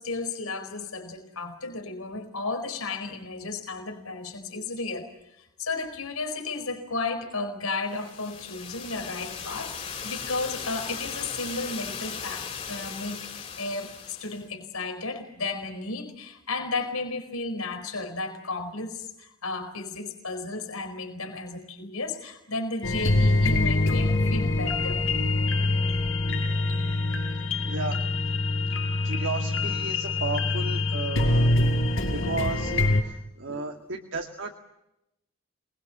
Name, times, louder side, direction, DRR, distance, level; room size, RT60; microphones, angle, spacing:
voice 1, 0.0-5.1 5.4-25.0 33.4-33.8, left 3 dB, 90° left, 4 dB, 4.7 m, -34 dB
sound 1, 7.9-14.4, left 6 dB, 30° left, 4.2 m, -37 dB
sound 2, 22.8-33.0, left 2 dB, 70° left, 5.7 m, -24 dB
voice 2, 27.7-28.0 29.0-34.5, right 3 dB, 60° right, 2 dB, 2.1 m, -34 dB
27.5 x 22.0 x 7.4 m, 0.85 s
head